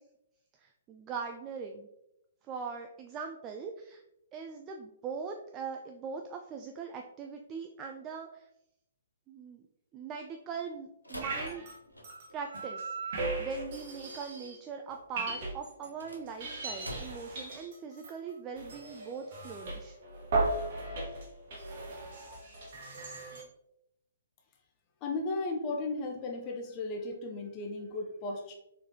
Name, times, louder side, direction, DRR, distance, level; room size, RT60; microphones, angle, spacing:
voice 1, 0.6-1.9 2.5-4.0 4.3-8.5 9.3-9.6 9.9-11.6 12.3-20.0, right 5 dB, 20° right, 3 dB, 0.3 m, -41 dB
sound 1, 11.0-12.4 15.8-17.4, equal, 90° left, 0.7 m, -46 dB
sound 2, 11.2-11.8 12.0-14.6 14.9-15.9 16.3-23.4, right 3 dB, 45° right, 1.1 m, -37 dB
voice 2, 25.0-28.6, left 3 dB, 30° left, 1 dB, 0.5 m, -35 dB
4.4 x 3.7 x 2.7 m, 0.83 s
figure-of-eight pair, 125°, 0 cm